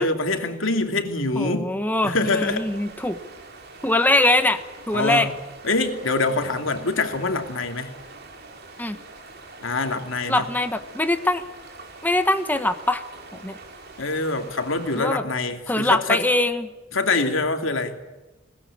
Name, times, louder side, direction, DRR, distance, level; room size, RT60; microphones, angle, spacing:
voice 1, 0.0-1.7 2.0-2.7 4.9-5.3 5.6-7.9 9.6-10.5 14.0-16.2 16.9-17.9, left 3 dB, 85° left, 5 dB, 2.8 m, -24 dB
voice 2, 1.4-3.2 3.8-4.6 4.9-5.3 8.8-9.0 10.3-11.4 12.0-13.0 13.3-13.5 14.9-15.2 15.7-16.7, left 1 dB, 10° left, 8 dB, 1.3 m, -22 dB
sound 1, 2.3-15.0, right 3 dB, 55° right, 5.6 m, -44 dB
21.0 x 19.5 x 8.6 m, 1.2 s
head